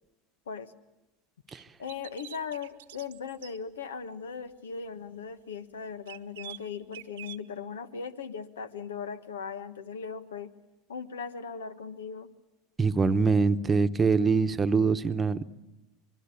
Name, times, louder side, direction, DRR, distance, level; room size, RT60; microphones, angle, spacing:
sound 1, 1.5-3.6 6.1-7.4, right 14 dB, 80° right, 1.0 m, -46 dB
voice 1, 1.8-10.5 10.9-12.3, left 6 dB, 90° left, 12 dB, 1.3 m, -38 dB
voice 2, 12.8-15.4, right 4 dB, 25° right, 11 dB, 1.0 m, -24 dB
25.5 x 22.0 x 8.5 m, 0.95 s
hypercardioid pair, 90°, 0 cm